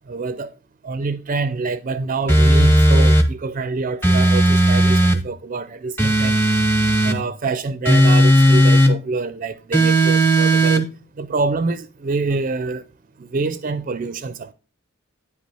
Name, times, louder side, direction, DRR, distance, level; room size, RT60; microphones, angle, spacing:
voice 1, 0.1-0.5 0.8-6.4 7.0-10.9 11.2-12.8 13.2-14.5, right 3 dB, 35° right, 0.4 m, -26 dB
sound 1, 2.3-3.3 4.0-5.2 6.0-7.2 7.9-8.9 9.7-10.8, right 1 dB, 10° left, 0.7 m, -15 dB
9.5 x 5.2 x 3.4 m
head